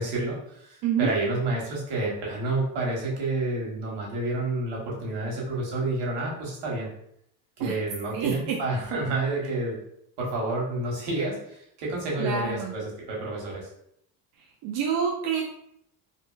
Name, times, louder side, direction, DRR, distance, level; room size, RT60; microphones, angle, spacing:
voice 1, 0.0-6.9 7.6-9.8 10.2-13.7, right 2 dB, 80° right, -3 dB, 1.2 m, -29 dB
voice 2, 8.1-8.6 12.2-12.7 14.6-15.4, right 7 dB, 60° right, -1 dB, 0.5 m, -27 dB
2.9 x 2.5 x 2.4 m, 0.73 s
cardioid pair, 125°, 41 cm